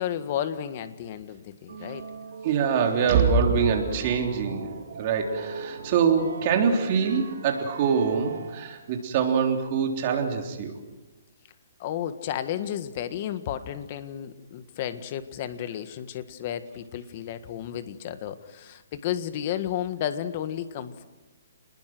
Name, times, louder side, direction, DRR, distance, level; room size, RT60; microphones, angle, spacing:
voice 1, 0.0-2.1 11.8-21.1, left 10 dB, 35° left, 11 dB, 1.7 m, -32 dB
sound 1, 1.7-9.0, right 5 dB, 70° right, 6.3 m, -40 dB
voice 2, 2.4-10.8, right 6 dB, 35° right, 3 dB, 3.6 m, -24 dB
30.0 x 20.5 x 6.3 m, 1.2 s
hypercardioid pair, 160°, 0 cm